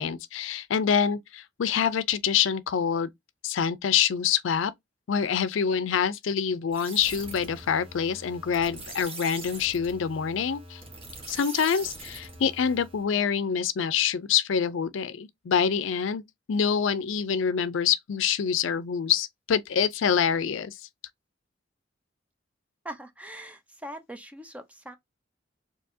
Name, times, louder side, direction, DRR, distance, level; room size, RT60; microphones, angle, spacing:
voice 1, 0.0-3.1 3.4-4.7 5.1-10.8 11.3-16.2 16.5-20.8, left 7 dB, 80° left, 0.4 m, -26 dB
sound 1, 6.7-13.1, right 2 dB, 30° right, 1.5 m, -42 dB
voice 2, 22.8-25.0, right 1 dB, 5° right, 0.6 m, -41 dB
4.5 x 2.8 x 2.7 m
head